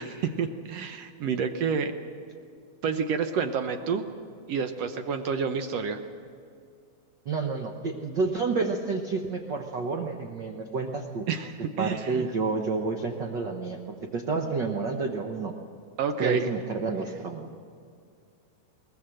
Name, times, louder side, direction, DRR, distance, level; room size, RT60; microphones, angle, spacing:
voice 1, 0.0-1.9 2.8-4.1 4.5-6.0 11.3-12.2 16.0-16.5, right 6 dB, 70° right, 8 dB, 1.6 m, -29 dB
voice 2, 7.2-11.2 11.8-15.5 16.2-17.5, right 4 dB, 90° right, 3 dB, 0.9 m, -29 dB
21.5 x 19.5 x 7.7 m, 2.3 s
omnidirectional pair, 3.7 m